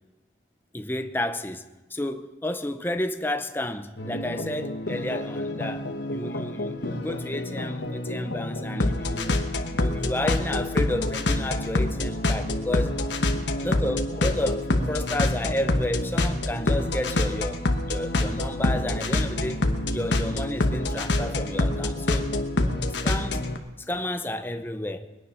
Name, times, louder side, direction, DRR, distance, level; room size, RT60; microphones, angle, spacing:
voice 1, 0.7-1.6 1.9-9.4 9.7-13.0 13.6-22.3 23.0-23.5 23.8-25.1, left 1 dB, 10° left, 0.7 m, -31 dB
sound 1, 4.0-23.6, left 2 dB, 70° left, 1.1 m, -27 dB
21.5 x 9.5 x 5.7 m
head